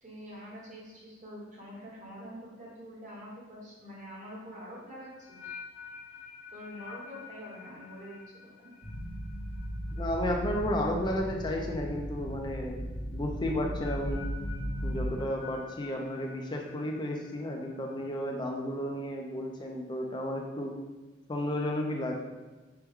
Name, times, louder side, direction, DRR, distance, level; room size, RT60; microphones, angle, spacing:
voice 1, 0.0-5.6 6.5-8.8, equal, 40° right, -5 dB, 1.1 m, -46 dB
sound 1, 4.4-11.6 11.8-12.2 13.5-18.1, left 5 dB, 85° left, 0.8 m, -50 dB
sound 2, 8.8-15.1, equal, 55° left, 1.2 m, -36 dB
voice 2, 9.9-14.3 14.8-20.8 21.3-22.2, left 1 dB, 25° left, 1 dB, 0.4 m, -33 dB
4.6 x 2.2 x 3.4 m, 1.2 s
head